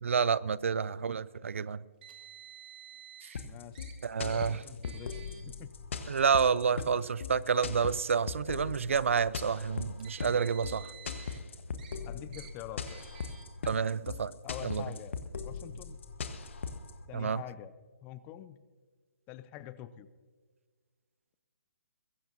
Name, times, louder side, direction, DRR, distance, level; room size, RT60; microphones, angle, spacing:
voice 1, 0.0-1.8 3.3-3.4 4.0-4.6 6.1-10.9 13.7-14.3 14.6-14.8 17.1-17.4, right 6 dB, 65° right, 20 dB, 0.5 m, -29 dB
Car, 2.0-3.4 3.7-3.9 4.3-4.5 4.8-5.4 6.2-6.4 7.4-7.5 9.8-11.4 11.8-12.0 12.3-12.5 12.9-13.4, right 9 dB, 40° right, 2.2 m, -51 dB
sound 1, 3.3-16.9, left 5 dB, 55° left, 1.3 m, -39 dB
voice 2, 3.4-3.8 4.1-5.3 5.6-5.7 11.7-13.1 14.4-15.2 15.4-16.0 17.1-17.7 18.0-18.6 19.3-20.1, left 12 dB, 20° left, 15 dB, 0.5 m, -46 dB
21.5 x 16.0 x 2.7 m, 1.5 s
figure-of-eight pair, 140°, 8 cm